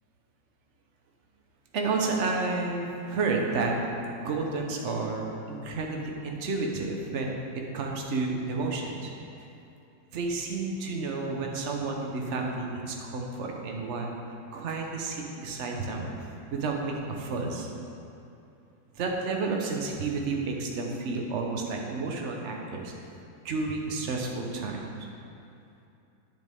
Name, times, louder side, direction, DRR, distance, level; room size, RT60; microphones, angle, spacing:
voice 1, 1.7-3.7 4.2-7.4 7.7-9.1 10.1-14.1 14.5-16.1 16.5-17.7 19.0-22.9 23.4-24.8, right 3 dB, 50° right, 1 dB, 1.1 m, -31 dB
9.4 x 7.8 x 3.6 m, 2.7 s
omnidirectional pair, 1.9 m